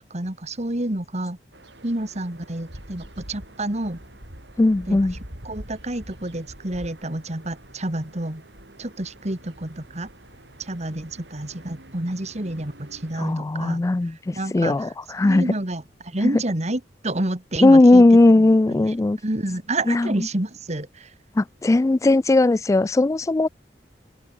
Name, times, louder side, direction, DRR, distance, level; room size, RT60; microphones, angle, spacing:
voice 1, 0.0-1.4 1.8-4.0 4.9-5.0 5.4-8.4 8.8-10.1 10.6-14.9 15.2-19.0 19.2-21.1, right 1 dB, 40° right, 2.5 m, -29 dB
sound 1, 1.5-13.3, right 1 dB, 85° right, 7.9 m, -45 dB
voice 2, 4.6-5.1 13.2-15.4 17.6-19.2 19.9-20.1 21.4-23.5, left 2 dB, 20° left, 0.3 m, -17 dB
open air
head